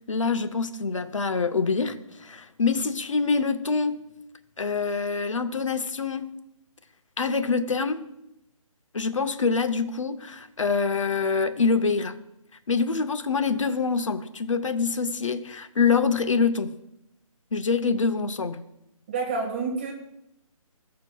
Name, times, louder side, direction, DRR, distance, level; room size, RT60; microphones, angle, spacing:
voice 1, 0.1-4.0 4.6-6.2 7.2-8.0 8.9-12.1 12.7-16.7 17.5-18.6, left 5 dB, 60° left, 10 dB, 0.7 m, -25 dB
voice 2, 19.1-19.9, right 4 dB, 20° right, 0 dB, 1.2 m, -28 dB
15.0 x 6.5 x 2.3 m, 0.83 s
hypercardioid pair, 175°, 18 cm